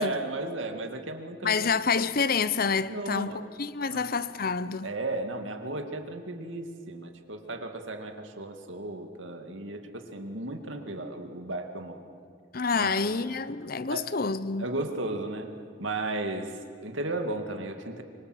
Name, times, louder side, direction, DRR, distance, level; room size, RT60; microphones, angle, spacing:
voice 1, 0.0-1.6 2.9-3.4 3.9-4.0 4.8-12.0 12.7-13.0 13.9-14.1 14.6-15.5 15.8-18.0, right 2 dB, 80° right, 2.2 m, -34 dB
voice 2, 1.4-4.9 12.5-14.7, left 5 dB, 50° left, 0.8 m, -28 dB
25.5 x 24.0 x 8.0 m
head